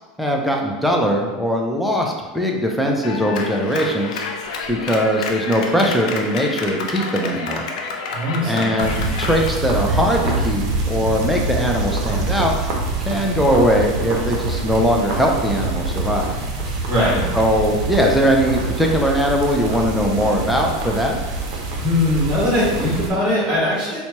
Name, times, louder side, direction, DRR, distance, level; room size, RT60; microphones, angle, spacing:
voice 1, 0.2-4.2 4.7-7.7 8.5-12.6 13.0-16.3 16.6-16.7 17.3-21.2, equal, ahead, 0 dB, 0.5 m, -20 dB
Clapping, 3.0-9.6, left 4 dB, 85° left, 0.5 m, -29 dB
voice 2, 8.1-8.7 16.9-17.3 21.8-24.0, left 1 dB, 25° right, -5 dB, 1.4 m, -20 dB
sound 1, 8.8-23.1, right 2 dB, 60° right, 0.7 m, -25 dB
4.2 x 2.2 x 2.9 m, 1.3 s
supercardioid pair, 130°, 4 cm